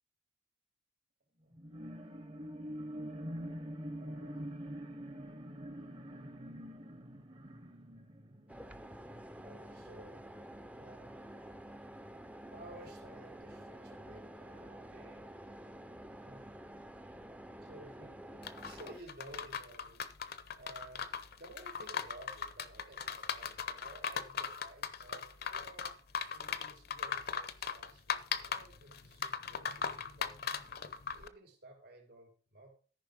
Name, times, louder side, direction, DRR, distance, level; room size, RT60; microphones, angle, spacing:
sound 1, 1.5-9.3 9.8-9.9, equal, 30° right, 0.8 m, -45 dB
voice 1, 3.9-4.6 9.4-10.3 10.7-11.2 12.4-15.3 16.2-16.5 17.6-25.9 26.3-30.3 31.1-32.7, right 1 dB, 60° right, 2 dB, 3.2 m, -55 dB
sound 2, 8.5-19.0, right 1 dB, 10° right, 0.5 m, -50 dB
sound 3, 18.4-31.3, left 6 dB, 60° left, 0.7 m, -39 dB
14.0 x 5.4 x 5.1 m, 0.41 s
head